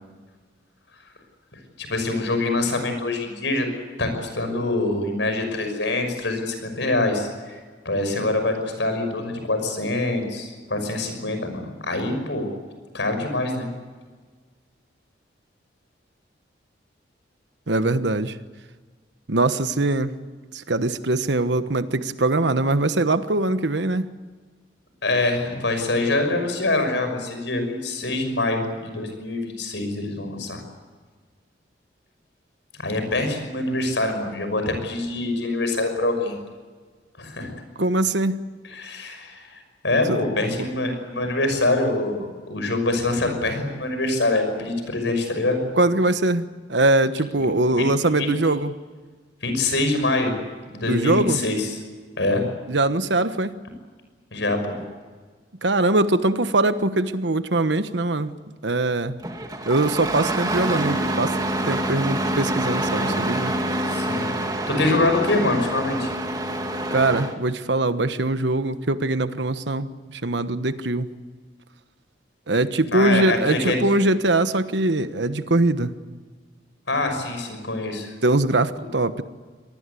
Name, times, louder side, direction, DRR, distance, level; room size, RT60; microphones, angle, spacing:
voice 1, 1.8-3.7 4.0-12.5 12.9-13.7 25.0-30.6 32.8-36.3 37.2-37.5 38.6-45.6 47.7-47.8 48.2-48.3 49.4-50.4 50.7-51.7 52.2-52.4 54.3-54.8 62.9-63.2 63.9-66.1 72.9-73.8 76.9-78.1, left 2 dB, 75° left, 6 dB, 6.0 m, -25 dB
voice 2, 17.7-18.4 19.3-20.1 20.5-24.0 37.8-38.4 40.1-40.2 45.8-48.7 50.9-51.4 52.7-53.5 55.6-58.3 58.6-59.2 59.7-61.3 61.6-63.5 66.9-71.1 72.5-75.9 78.2-79.2, right 2 dB, 70° right, 11 dB, 1.2 m, -22 dB
Engine starting, 59.2-67.3, right 1 dB, 20° right, 2.2 m, -26 dB
26.0 x 19.5 x 8.4 m, 1.5 s
head